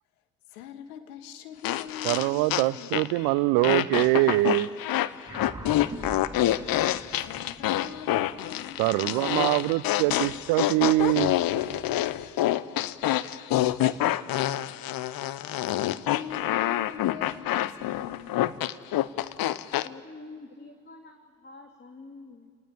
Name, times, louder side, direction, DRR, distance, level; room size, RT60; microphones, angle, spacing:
voice 1, 0.5-3.0 7.2-9.7 15.7-18.3, left 9 dB, 75° left, 9 dB, 1.7 m, -43 dB
sound 1, 1.6-3.3 3.6-19.9, left 14 dB, 50° left, 0.9 m, -27 dB
voice 2, 2.0-4.7 8.8-11.4 11.7-11.8, right 19 dB, 60° right, 15 dB, 0.6 m, -24 dB
sound 2, 5.3-10.0, right 2 dB, 10° right, 6.5 m, -43 dB
voice 3, 19.8-22.5, left 3 dB, 25° left, 3 dB, 2.7 m, -47 dB
30.0 x 19.0 x 8.6 m, 2.1 s
figure-of-eight pair, 50°, 44 cm